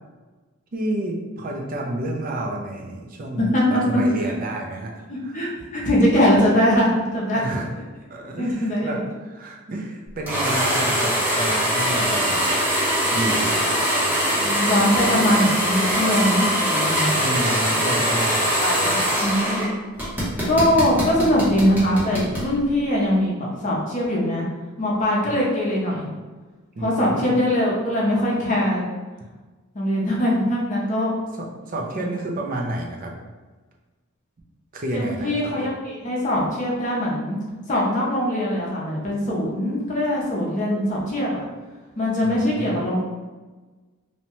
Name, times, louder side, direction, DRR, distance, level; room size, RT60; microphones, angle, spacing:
voice 1, 0.7-5.4 7.3-7.7 8.1-12.6 13.1-13.6 17.2-18.5 18.8-19.2 26.8-27.3 31.4-33.1 34.7-35.7 42.2-42.8, right 1 dB, 40° right, 1 dB, 0.4 m, -30 dB
voice 2, 3.9-4.3 5.1-7.4 8.4-9.0 14.4-17.2 18.6-19.8 20.5-24.4 24.8-26.1 26.8-28.8 29.7-31.1 31.9-32.1 34.9-37.4 37.7-41.4 42.0-43.0, left 1 dB, 35° left, -4 dB, 0.6 m, -22 dB
sound 1, 10.3-19.7 20.0-22.5, equal, 10° right, 0.7 m, -22 dB
2.7 x 2.1 x 2.9 m, 1.3 s
head